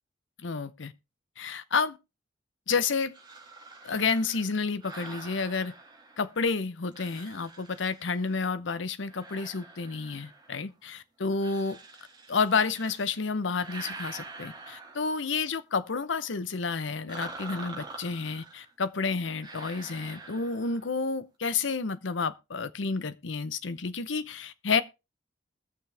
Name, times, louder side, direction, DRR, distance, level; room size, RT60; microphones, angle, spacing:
voice 1, 0.4-0.9 1.4-2.0 2.7-3.1 3.8-5.7 6.2-11.8 12.3-24.8, left 4 dB, 75° left, 0.8 m, -30 dB
sound 1, 3.1-6.5 6.9-8.5 9.0-10.7 11.3-13.2 13.5-15.4 17.1-18.7 19.4-21.0, right 3 dB, 25° right, 2.1 m, -46 dB
20.5 x 6.9 x 3.4 m
head